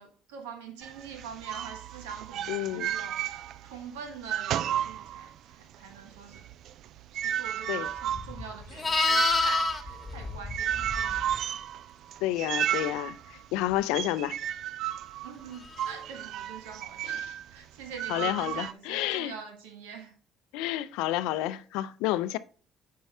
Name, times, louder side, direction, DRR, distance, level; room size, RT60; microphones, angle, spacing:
voice 1, 0.0-6.4 7.1-11.6 15.2-20.1, right 6 dB, 85° right, 1.4 m, -44 dB
sound 1, 0.8-3.8 4.1-5.5 5.9-17.4 18.0-18.7, right 11 dB, 65° right, 0.3 m, -33 dB
voice 2, 2.5-2.9 7.7-7.9 12.2-14.4 17.0-17.3 18.1-19.3 20.5-22.4, left 14 dB, 80° left, 0.4 m, -30 dB
Livestock farm animals working animals, 8.1-11.4 15.7-16.0, left 4 dB, 30° left, 1.3 m, -29 dB
8.0 x 4.7 x 3.5 m
hypercardioid pair, 55°, 0 cm